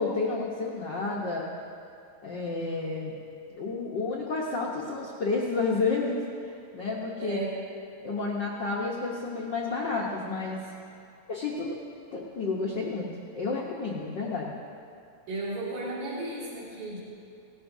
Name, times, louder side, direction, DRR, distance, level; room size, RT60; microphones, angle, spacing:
voice 1, 0.0-1.5 2.2-3.2 3.6-7.4 8.0-10.6 11.3-11.8 12.1-13.1 13.3-14.6, left 3 dB, 90° left, -4 dB, 0.9 m, -30 dB
voice 2, 7.2-7.5 15.3-17.0, right 2 dB, 70° right, -8 dB, 3.8 m, -34 dB
18.0 x 14.0 x 2.7 m, 2.5 s
omnidirectional pair, 3.6 m